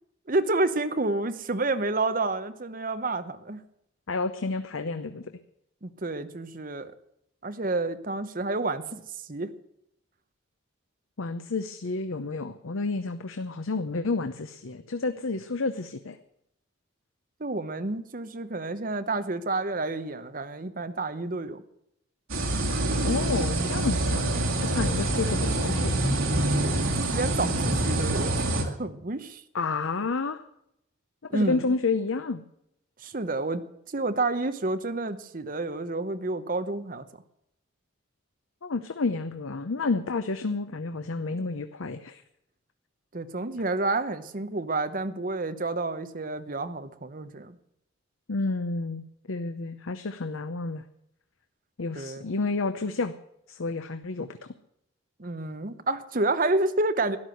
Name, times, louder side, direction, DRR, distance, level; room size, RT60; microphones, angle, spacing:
voice 1, 0.3-3.6 5.8-6.9 7.4-9.0 9.3-9.5 17.4-21.6 27.0-29.4 31.3-31.6 33.0-37.1 43.1-47.6 51.9-52.3 55.2-57.2, right 2 dB, 40° right, 11 dB, 0.9 m, -29 dB
voice 2, 4.1-5.3 11.2-16.2 23.0-26.1 29.5-30.4 31.3-32.4 38.6-42.2 48.3-50.8 51.8-53.1 53.5-54.4, left 3 dB, 80° left, 10 dB, 0.7 m, -30 dB
sound 1, 22.3-28.6, right 1 dB, 80° right, 2.1 m, -26 dB
13.0 x 11.0 x 7.8 m, 0.78 s
head